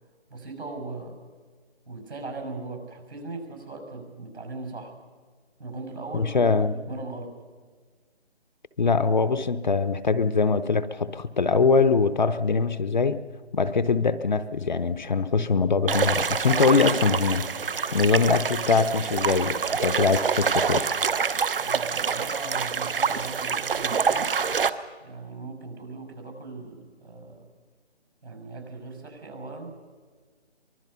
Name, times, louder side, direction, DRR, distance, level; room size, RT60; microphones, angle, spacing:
voice 1, 0.3-1.2 1.9-4.9 5.6-7.4 21.6-24.3 25.0-27.5 28.2-29.8, right 3 dB, 75° right, 5 dB, 6.7 m, -39 dB
voice 2, 6.1-6.8 8.8-13.2 13.5-17.5 17.9-20.8, left 4 dB, 45° left, 12 dB, 0.8 m, -23 dB
sound 1, 15.9-24.7, right 6 dB, 55° right, 0.9 m, -26 dB
24.0 x 21.0 x 5.7 m, 1.5 s
hypercardioid pair, 170°, 33 cm